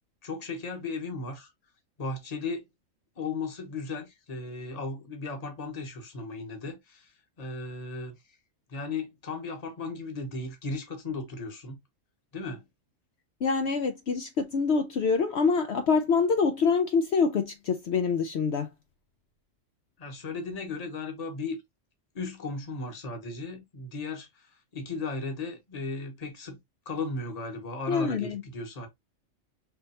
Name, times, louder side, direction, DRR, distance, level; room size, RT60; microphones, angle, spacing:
voice 1, 0.2-1.5 2.0-2.6 3.2-7.1 7.4-8.2 8.7-11.8 12.3-12.6 20.0-21.6 22.1-26.6 26.8-28.9, left 3 dB, 30° left, 1.2 m, -36 dB
voice 2, 13.4-18.7 27.9-28.4, left 5 dB, 65° left, 0.8 m, -25 dB
5.4 x 3.2 x 2.8 m
omnidirectional pair, 1.3 m